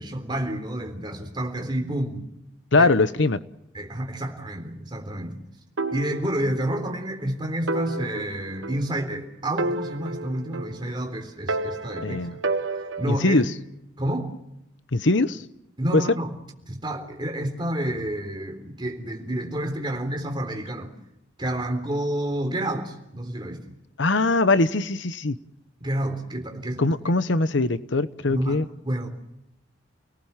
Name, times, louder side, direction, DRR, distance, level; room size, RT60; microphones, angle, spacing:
voice 1, 0.0-2.3 2.7-2.9 3.7-5.4 5.9-12.2 13.0-13.4 14.0-14.3 15.8-16.3 16.7-20.9 21.4-23.6 25.8-26.8 28.3-29.1, right 1 dB, 25° right, 4 dB, 3.7 m, -29 dB
voice 2, 2.7-3.4 12.0-12.4 13.1-13.4 14.9-15.4 15.9-16.0 24.0-25.4 26.8-28.7, left 3 dB, 75° left, 13 dB, 1.0 m, -21 dB
sound 1, 5.8-6.9 7.2-7.3 7.7-9.2 9.6-11.0 11.5-13.3, right 2 dB, 90° right, 1.5 m, -31 dB
29.5 x 19.0 x 7.4 m, 0.87 s
head